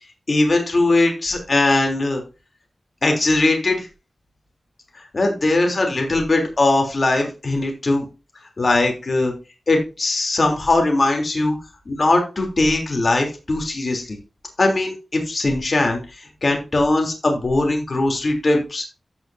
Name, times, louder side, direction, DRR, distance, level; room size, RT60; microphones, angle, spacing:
voice 1, 0.3-2.2 3.0-3.9 5.1-8.0 8.6-9.3 9.7-11.6 11.9-14.2 14.6-16.0 16.4-18.8, left 2 dB, 50° left, 2 dB, 3.2 m, -20 dB
15.0 x 5.9 x 2.7 m, 0.29 s
wide cardioid pair, 60°, 0 cm